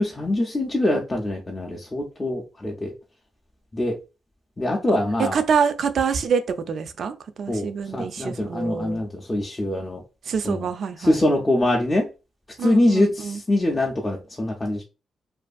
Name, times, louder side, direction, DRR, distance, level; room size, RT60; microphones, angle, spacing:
voice 1, 0.0-2.9 3.7-4.0 4.6-5.4 7.5-10.0 10.4-10.7 11.0-12.1 12.6-14.8, left 1 dB, 20° left, 0.4 m, -23 dB
voice 2, 5.3-6.4 6.7-9.0 10.3-11.2 12.6-13.4, right 6 dB, 60° right, 0.3 m, -26 dB
2.5 x 2.4 x 2.3 m
cardioid pair, 130°, 0 cm